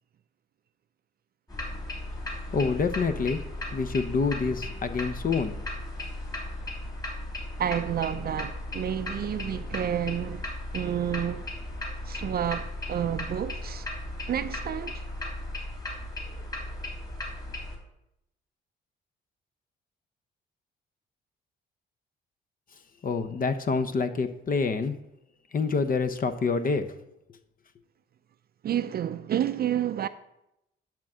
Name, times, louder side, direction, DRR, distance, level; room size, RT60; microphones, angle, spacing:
sound 1, 1.5-17.8, left 1 dB, 20° left, 3.2 m, -36 dB
voice 1, 2.5-3.4 3.7-5.6 23.0-25.0 25.5-27.0, left 4 dB, 45° left, 0.8 m, -27 dB
voice 2, 7.6-11.5 12.1-13.9 14.3-15.0 28.6-30.1, right 10 dB, 50° right, 0.4 m, -30 dB
10.5 x 3.8 x 7.4 m
cardioid pair, 90°, 20 cm